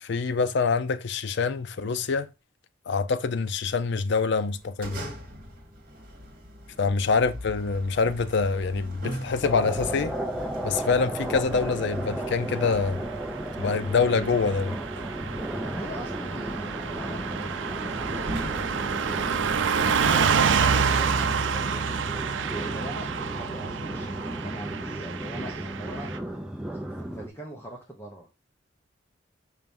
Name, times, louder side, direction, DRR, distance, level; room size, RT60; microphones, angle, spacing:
voice 1, 0.0-2.3 2.9-5.0 6.8-10.1 10.6-13.0 13.6-14.7, left 4 dB, 65° left, 0.5 m, -25 dB
sound 1, 4.3-20.4, equal, 50° right, 1.5 m, -41 dB
sound 2, 9.4-27.3, right 1 dB, 5° right, 0.7 m, -35 dB
Car passing by / Truck, 13.2-26.2, right 6 dB, 85° right, 0.5 m, -28 dB
voice 2, 15.6-21.8 22.4-26.4 26.7-28.5, right 1 dB, 15° left, 1.0 m, -41 dB
5.9 x 3.0 x 5.3 m
head